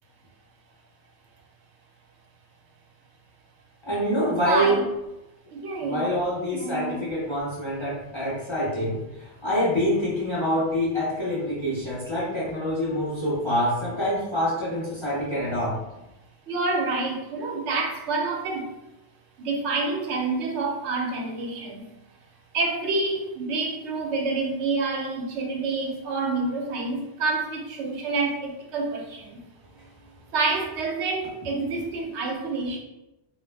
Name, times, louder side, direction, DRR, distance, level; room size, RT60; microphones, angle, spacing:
voice 1, 3.9-4.8 5.8-15.7, equal, 30° left, -8 dB, 0.6 m, -26 dB
voice 2, 5.5-6.2 6.5-7.0 16.5-18.7 19.4-21.9 22.5-29.4 30.3-32.8, right 3 dB, 75° right, 1 dB, 0.8 m, -28 dB
2.2 x 2.0 x 3.2 m, 0.94 s
omnidirectional pair, 1.2 m